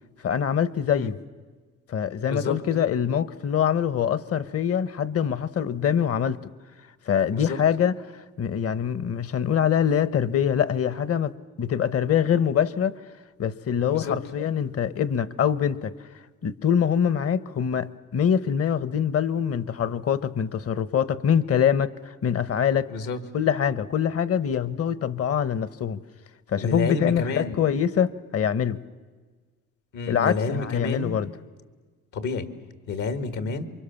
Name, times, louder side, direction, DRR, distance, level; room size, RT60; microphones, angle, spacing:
voice 1, 0.2-1.2 1.9-6.4 7.1-13.0 13.4-15.9 16.4-22.9 23.3-26.0 26.5-28.8 30.1-31.3, left 8 dB, 50° left, 1.1 m, -24 dB
voice 2, 2.3-2.6 7.3-7.6 13.9-14.2 22.9-23.2 26.6-27.6 29.9-31.2 32.1-32.5 32.9-33.7, left 4 dB, 80° left, 2.2 m, -29 dB
28.5 x 24.0 x 7.1 m
cardioid pair, 90°, 30 cm